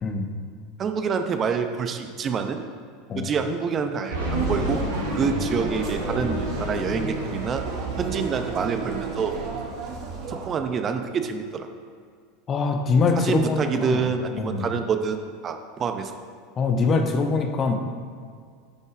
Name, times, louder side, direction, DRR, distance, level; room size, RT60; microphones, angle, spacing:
voice 1, 0.0-0.3 3.1-3.3 12.5-14.1 14.4-14.7 16.6-17.8, left 4 dB, 30° left, 5 dB, 1.0 m, -23 dB
voice 2, 0.8-2.6 3.1-4.8 5.1-7.6 8.0-9.3 10.3-11.7 13.1-16.1, right 6 dB, 30° right, 7 dB, 0.7 m, -27 dB
sound 1, 4.1-9.6, right 2 dB, 85° right, 2.1 m, -29 dB
sound 2, 4.3-10.5, right 4 dB, 50° right, 1.4 m, -36 dB
10.5 x 5.5 x 4.8 m, 2.1 s
figure-of-eight pair, 80°, 0 cm